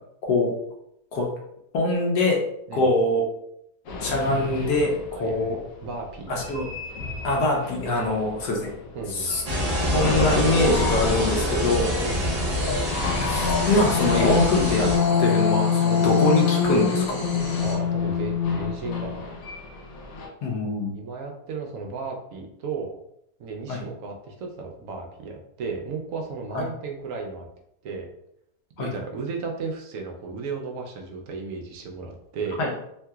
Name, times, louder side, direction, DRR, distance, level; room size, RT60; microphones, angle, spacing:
voice 1, 1.7-2.4 2.7-3.2 4.0-5.6 6.3-6.6 7.2-8.7 9.1-9.4 9.9-11.9 13.2-14.9 15.2-17.0 20.4-21.0 23.7-23.8 26.5-26.6 28.8-28.9 32.6-32.7, left 2 dB, 80° left, -1 dB, 1.2 m, -23 dB
sound 1, 3.9-5.2 6.4-8.9 9.2-9.6 10.0-20.3, left 6 dB, 65° left, 1.0 m, -26 dB
voice 2, 5.1-5.6 5.8-6.4 8.9-9.3 12.0-12.3 15.9-16.1 17.6-19.4 20.9-23.0 23.4-27.5 27.8-28.1 28.8-32.6, right 4 dB, 70° right, 1 dB, 0.8 m, -34 dB
sound 2, 9.4-15.0, equal, 40° right, 0.5 m, -26 dB
sound 3, 12.5-17.7, left 2 dB, 25° left, 0.9 m, -34 dB
3.1 x 2.7 x 2.3 m, 0.77 s
omnidirectional pair, 1.7 m